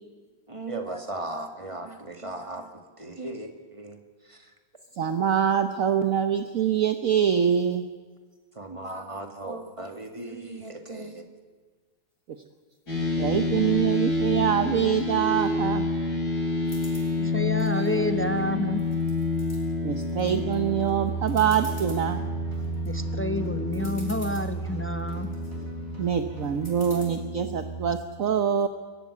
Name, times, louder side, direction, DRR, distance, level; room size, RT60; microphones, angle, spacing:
voice 1, 0.5-4.5 8.5-11.2, right 2 dB, 20° right, 5 dB, 2.0 m, -37 dB
voice 2, 5.0-7.8 13.2-15.9 17.8-17.9 19.8-22.2 26.0-28.7, right 8 dB, 55° right, 8 dB, 1.3 m, -24 dB
sound 1, 12.9-27.9, left 2 dB, 70° left, 5.5 m, -29 dB
sound 2, 16.6-17.1 17.6-18.4 18.8-19.6 20.1-20.5 20.9-21.0 21.3-22.0 22.5-22.9 23.5-23.6 23.7-24.5 25.0-25.5 26.6-27.1, left 2 dB, 50° left, 5.6 m, -46 dB
voice 3, 17.2-18.8 22.8-25.3, left 1 dB, 15° left, 9 dB, 0.4 m, -29 dB
sound 3, 20.2-27.0, equal, 40° right, 4.6 m, -45 dB
23.0 x 14.5 x 9.6 m, 1.4 s
omnidirectional pair, 1.8 m